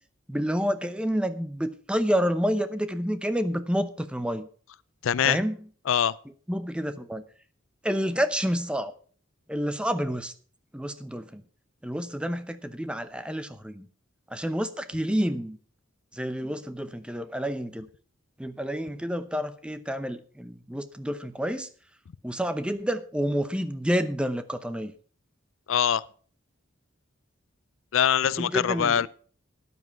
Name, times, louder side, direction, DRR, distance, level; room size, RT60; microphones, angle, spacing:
voice 1, 0.3-4.5 5.2-5.6 6.5-7.2 7.8-8.9 9.5-10.3 10.7-11.4 11.8-13.9 14.3-15.6 16.1-17.9 18.4-21.7 22.2-24.9 28.4-29.1, equal, 5° right, 0.7 m, -29 dB
voice 2, 5.0-5.4 5.9-6.1 25.7-26.0 27.9-29.1, left 8 dB, 80° left, 0.4 m, -23 dB
13.0 x 9.7 x 4.6 m
head